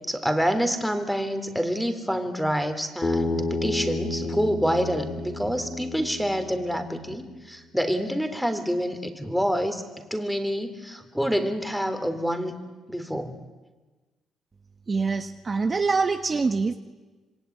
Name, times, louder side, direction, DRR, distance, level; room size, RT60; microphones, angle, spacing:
voice 1, 0.1-9.8 10.1-12.6 12.9-13.4, equal, ahead, 9 dB, 3.6 m, -27 dB
Bass guitar, 3.0-7.3, left 2 dB, 30° left, 4.8 m, -31 dB
voice 2, 14.9-16.8, right 4 dB, 35° right, 7 dB, 1.3 m, -25 dB
26.5 x 23.0 x 9.6 m, 1.3 s
cardioid pair, 90°, 0 cm